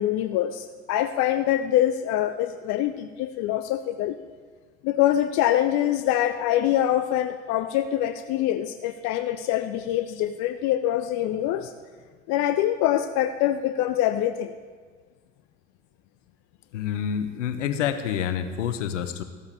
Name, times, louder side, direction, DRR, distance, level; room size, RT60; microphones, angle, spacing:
voice 1, 0.0-4.2 4.8-11.7 12.3-14.5, left 12 dB, 45° left, 10 dB, 0.5 m, -24 dB
voice 2, 16.7-19.2, left 9 dB, 70° left, 11 dB, 0.9 m, -28 dB
14.0 x 13.0 x 3.4 m, 1.5 s
figure-of-eight pair, 65°, 38 cm